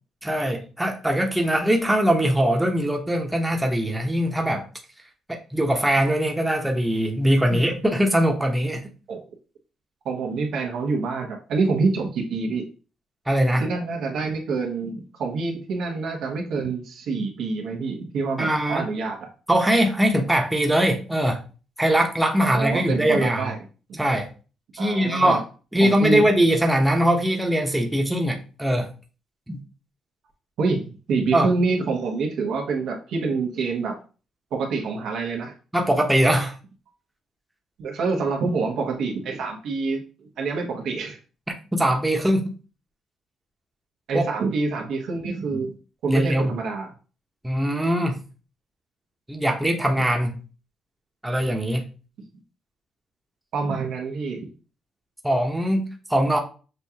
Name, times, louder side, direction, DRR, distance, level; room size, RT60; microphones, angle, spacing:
voice 1, 0.2-4.6 5.3-8.8 13.3-13.7 18.4-18.9 19.5-21.4 21.8-23.5 24.0-24.3 24.7-25.4 25.7-28.9 29.5-29.6 31.3-31.5 35.7-36.5 41.7-42.5 44.1-44.3 45.5-45.6 46.1-46.5 47.4-48.2 49.3-50.4 51.2-51.9 55.2-56.4, right 1 dB, 5° right, 2 dB, 0.9 m, -21 dB
voice 2, 10.0-12.6 13.6-19.2 22.4-23.6 24.8-25.4 25.8-26.3 30.6-34.0 34.5-35.5 37.8-41.2 44.1-45.7 46.0-46.9 53.5-54.5, right 4 dB, 75° right, 1 dB, 1.2 m, -26 dB
6.5 x 2.4 x 2.8 m, 0.35 s
cardioid pair, 90°, 0 cm